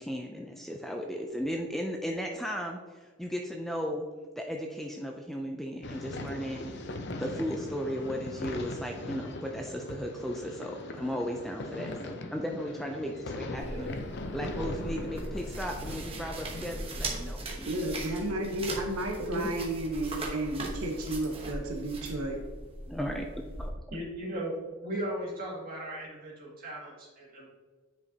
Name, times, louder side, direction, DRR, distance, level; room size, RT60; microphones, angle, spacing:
voice 1, 0.0-4.0 4.4-6.7 7.2-13.9 14.3-17.8 22.9-23.3 23.6-23.7, equal, ahead, 1 dB, 0.4 m, -36 dB
sound 1, 5.8-17.0, left 2 dB, 50° left, 0.6 m, -40 dB
sound 2, 13.6-23.7, right 2 dB, 25° right, 1.0 m, -39 dB
voice 2, 17.6-22.4, right 1 dB, 80° right, 2 dB, 1.0 m, -32 dB
voice 3, 19.2-19.5 23.9-24.5 24.8-27.5, right 1 dB, 40° right, -5 dB, 2.2 m, -37 dB
9.4 x 5.1 x 2.8 m, 1.4 s
head